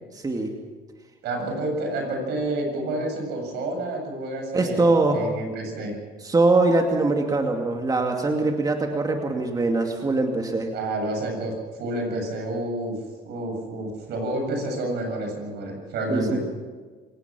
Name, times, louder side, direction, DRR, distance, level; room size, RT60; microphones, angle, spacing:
voice 1, 1.2-6.0 10.7-13.0 13.3-16.4, right 1 dB, 80° right, 2 dB, 7.3 m, -29 dB
voice 2, 4.5-5.2 6.2-10.7 16.1-16.4, right 2 dB, 20° right, 3 dB, 2.4 m, -22 dB
26.5 x 17.5 x 6.2 m, 1.4 s
cardioid pair, 110°, 17 cm